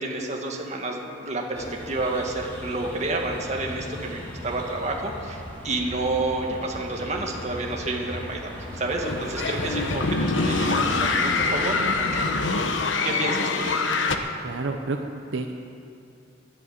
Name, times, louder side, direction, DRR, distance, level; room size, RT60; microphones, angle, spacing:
voice 1, 0.0-4.2 4.4-10.0 10.3-14.0, right 2 dB, 35° right, 1 dB, 1.8 m, -30 dB
sound 1, 1.5-12.6, equal, 10° left, 3.3 m, -37 dB
sound 2, 9.0-14.2, left 3 dB, 85° left, 1.0 m, -25 dB
voice 2, 14.4-15.5, right 3 dB, 75° right, 5 dB, 0.7 m, -30 dB
11.0 x 11.0 x 8.9 m, 2.5 s
head